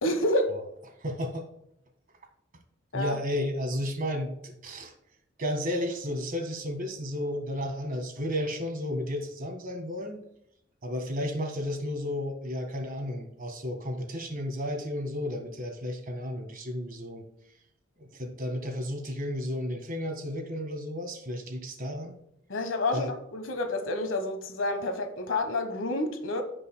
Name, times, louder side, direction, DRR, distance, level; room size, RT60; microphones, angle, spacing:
voice 1, 0.0-0.6 2.9-3.2 22.5-26.4, left 1 dB, 75° left, 1.3 m, -29 dB
voice 2, 1.0-1.5 2.9-4.9 5.4-10.2 10.8-17.3 18.0-22.2 22.9-23.1, left 1 dB, 45° right, 1.7 m, -33 dB
16.0 x 5.5 x 2.2 m
head